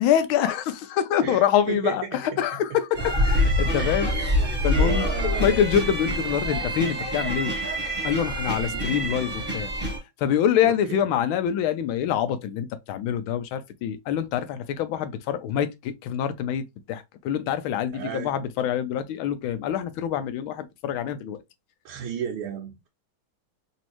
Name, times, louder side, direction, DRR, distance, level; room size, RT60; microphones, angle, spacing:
voice 1, 0.0-4.1 4.6-7.5 8.0-9.7 10.2-16.6 16.9-21.4, left 9 dB, 80° left, 1.3 m, -25 dB
voice 2, 1.2-2.0 3.5-4.1 4.8-5.5 8.7-8.9 10.6-11.0 17.9-18.3 21.9-22.9, right 8 dB, 90° right, 1.7 m, -33 dB
sound 1, 2.9-10.0, equal, 5° right, 0.8 m, -26 dB
4.1 x 2.7 x 2.9 m
omnidirectional pair, 2.3 m